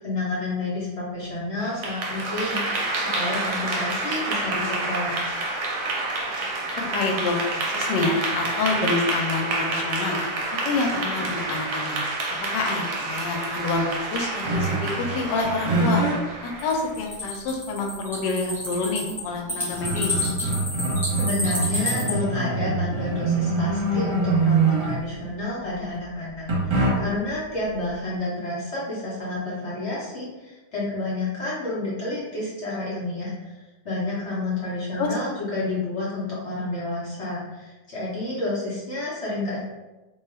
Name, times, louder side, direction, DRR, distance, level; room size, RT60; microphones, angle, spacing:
voice 1, 0.0-5.3 21.2-39.6, left 2 dB, 55° left, -7 dB, 0.8 m, -30 dB
Clapping / Applause, 1.6-16.9, right 2 dB, 75° right, 1.1 m, -28 dB
voice 2, 6.8-7.4 7.6-10.2 10.6-12.0 12.5-16.0 16.4-20.3 35.0-35.1, left 3 dB, 85° left, 2 dB, 1.2 m, -27 dB
sound 1, 14.4-15.1 15.4-16.2 16.9-17.0 19.1-19.2 19.5-25.2 26.5-27.3, right 3 dB, 45° right, 1.1 m, -24 dB
sound 2, 16.6-22.1, left 1 dB, ahead, 0.4 m, -30 dB
2.9 x 2.3 x 3.2 m, 1.1 s
omnidirectional pair, 1.8 m